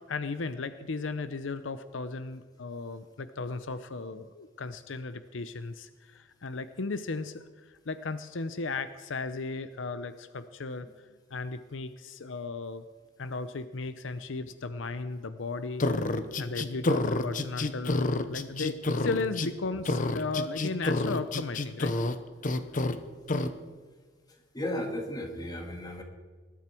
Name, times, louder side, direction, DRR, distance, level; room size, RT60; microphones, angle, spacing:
voice 1, 0.1-10.9 11.3-12.8 13.2-15.9 16.4-21.9 22.6-22.7, left 3 dB, 75° left, 11 dB, 0.7 m, -35 dB
sound 1, 15.8-19.5 19.8-22.2 22.4-23.0 23.3-23.5, left 2 dB, 45° left, 0.9 m, -28 dB
voice 2, 24.5-26.0, left 1 dB, 20° left, 3 dB, 2.3 m, -34 dB
20.0 x 12.5 x 4.5 m, 1.4 s
head